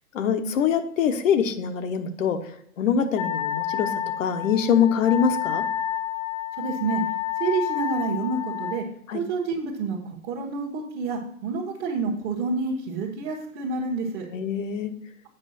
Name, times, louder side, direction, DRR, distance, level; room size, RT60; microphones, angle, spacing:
voice 1, 0.1-5.6 9.1-9.2 14.3-14.9, left 7 dB, 65° left, 9 dB, 1.1 m, -24 dB
Wind instrument woodwind instrument, 3.2-8.8, left 11 dB, 35° left, 1.0 m, -29 dB
voice 2, 6.5-7.0 7.4-8.8 9.1-14.3, right 4 dB, 25° right, -4 dB, 1.3 m, -28 dB
8.1 x 5.5 x 4.1 m, 0.70 s
hypercardioid pair, 135°, 43 cm